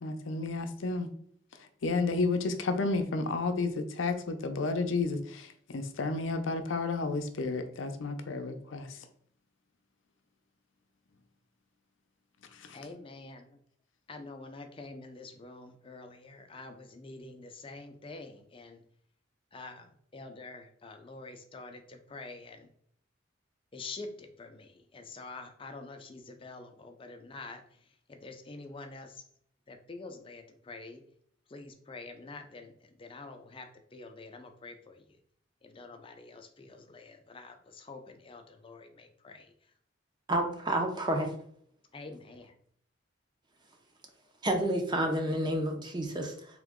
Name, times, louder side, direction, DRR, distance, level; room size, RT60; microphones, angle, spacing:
voice 1, 0.0-1.1 1.8-9.0 12.5-12.8, left 3 dB, 80° left, 7 dB, 0.5 m, -31 dB
voice 2, 12.7-13.6 14.1-18.8 19.5-22.7 23.7-27.6 28.1-29.2 29.7-31.0 31.5-35.0 35.6-39.5 41.9-42.5, left 3 dB, 30° left, 5 dB, 0.5 m, -47 dB
voice 3, 40.3-41.3 44.4-46.6, right 1 dB, 25° right, 3 dB, 0.6 m, -30 dB
3.6 x 3.0 x 3.6 m, 0.65 s
head